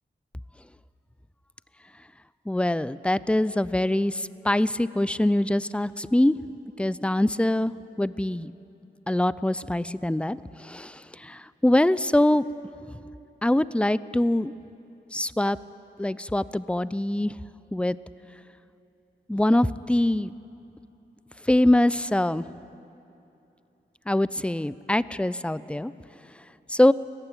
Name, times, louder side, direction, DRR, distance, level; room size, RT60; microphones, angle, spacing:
voice 1, 2.5-6.4 6.8-7.7 8.0-8.5 9.1-12.4 13.4-14.5 15.1-15.6 16.0-17.3 17.7-18.0 19.3-20.3 21.5-22.4 24.1-25.9 26.7-26.9, left 1 dB, 5° left, 17 dB, 0.5 m, -23 dB
19.5 x 14.5 x 9.2 m, 2.8 s
cardioid pair, 45°, 19 cm